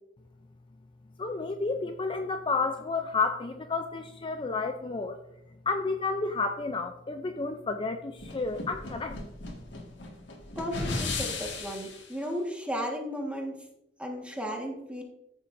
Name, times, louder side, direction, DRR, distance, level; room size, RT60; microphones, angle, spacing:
voice 1, 1.2-5.2 5.7-9.2, left 3 dB, 25° left, 6 dB, 0.5 m, -31 dB
sound 1, 8.2-12.1, left 3 dB, 65° left, 1.9 m, -35 dB
voice 2, 10.6-13.6 14.0-15.0, equal, 5° right, 1 dB, 1.5 m, -34 dB
14.0 x 7.3 x 2.6 m, 0.86 s
head